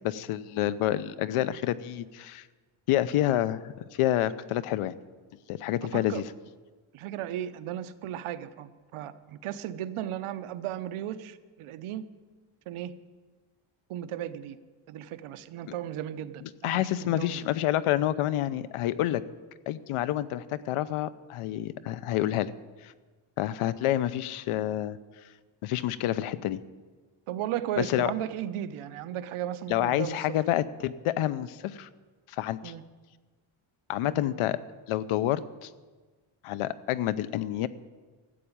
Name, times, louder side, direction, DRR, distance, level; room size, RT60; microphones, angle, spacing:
voice 1, 0.0-2.4 2.9-4.9 5.5-6.2 16.6-19.2 19.7-22.5 22.8-22.9 23.4-25.0 25.6-26.6 27.8-28.1 29.7-31.9 32.3-32.7 33.9-34.6 34.9-35.7 36.4-37.7, left 13 dB, 90° left, 15 dB, 0.8 m, -28 dB
voice 2, 5.9-6.2 6.9-12.0 12.7-12.9 13.9-14.6 14.9-17.5 27.3-30.4 32.6-32.8 34.0-34.2, right 11 dB, 85° right, 12 dB, 0.9 m, -35 dB
13.5 x 8.0 x 8.7 m, 1.4 s
cardioid pair, 145°, 50 cm